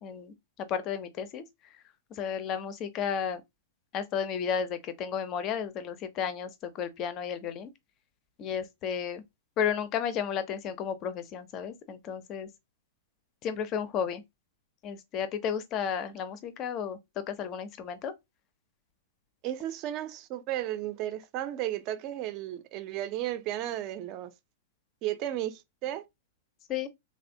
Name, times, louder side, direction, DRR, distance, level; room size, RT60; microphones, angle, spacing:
voice 1, 0.0-1.4 2.1-3.4 3.9-7.7 8.4-9.2 9.6-12.5 13.4-14.2 14.8-17.0 17.3-18.1 26.7-26.9, left 7 dB, 35° left, 0.5 m, -33 dB
voice 2, 19.4-24.3 25.0-26.0, right 13 dB, 40° right, 0.5 m, -34 dB
3.2 x 2.4 x 2.6 m
figure-of-eight pair, 100°, 0 cm